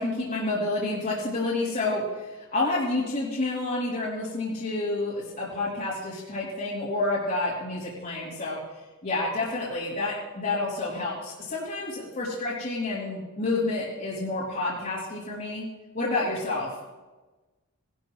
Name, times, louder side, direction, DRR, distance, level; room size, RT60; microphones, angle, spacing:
voice 1, 0.0-8.6 9.0-15.6 15.9-16.7, left 2 dB, 40° left, -9 dB, 3.2 m, -29 dB
19.5 x 12.0 x 3.1 m, 1.2 s
head